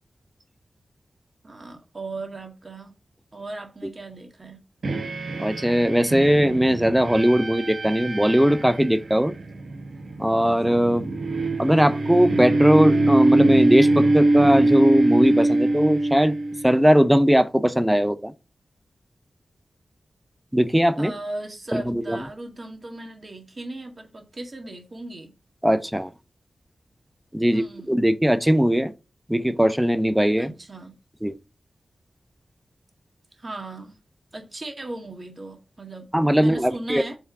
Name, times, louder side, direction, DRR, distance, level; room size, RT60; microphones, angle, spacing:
voice 1, 1.4-2.9 3.3-4.6 21.0-25.3 27.5-28.0 30.4-31.0 33.4-34.0 34.3-36.1 36.4-37.2, right 2 dB, 40° right, 1.8 m, -37 dB
sound 1, 4.8-16.9, right 2 dB, 70° right, 1.2 m, -23 dB
voice 2, 5.4-9.3 10.2-11.1 11.6-16.4 16.6-18.3 20.5-21.1 21.7-22.2 25.6-26.1 27.3-28.9 29.3-30.5 31.2-31.3 36.1-37.0, equal, 5° right, 0.5 m, -19 dB
5.7 x 3.5 x 4.8 m
cardioid pair, 70°, 0 cm